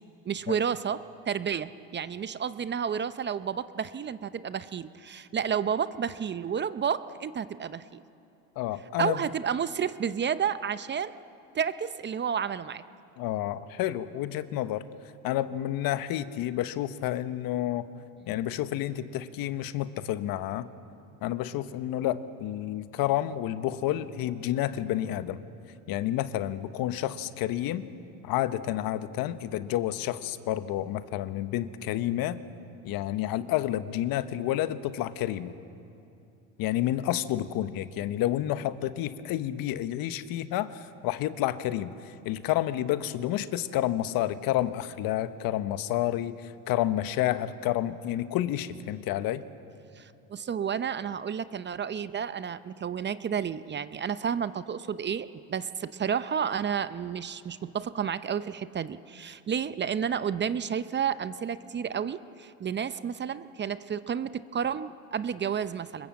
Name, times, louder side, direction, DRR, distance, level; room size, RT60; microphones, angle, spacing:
voice 1, 0.3-1.0 1.3-8.0 9.0-11.2 11.5-12.8 50.0-66.1, right 7 dB, 25° right, 14 dB, 0.7 m, -31 dB
voice 2, 8.6-9.2 13.2-14.9 15.2-17.9 18.3-20.7 21.2-25.4 25.9-27.9 28.2-32.4 32.8-35.5 36.6-41.9 42.2-49.4, left 13 dB, 55° left, 12 dB, 1.2 m, -30 dB
25.5 x 22.0 x 7.6 m, 2.6 s
supercardioid pair, 95°, 41 cm